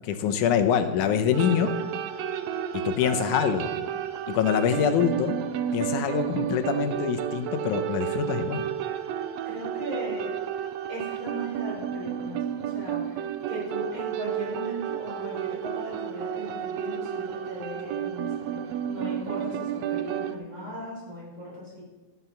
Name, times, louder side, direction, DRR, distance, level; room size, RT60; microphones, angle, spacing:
voice 1, 0.0-1.7 2.9-3.7 4.3-5.4 5.7-8.6, left 8 dB, 90° left, 7 dB, 2.4 m, -25 dB
sound 1, 1.3-20.3, right 9 dB, 75° right, 1.7 m, -31 dB
voice 2, 9.5-10.3 10.9-21.8, equal, 40° right, -4 dB, 5.4 m, -38 dB
13.0 x 9.4 x 5.7 m, 1.2 s
omnidirectional pair, 3.4 m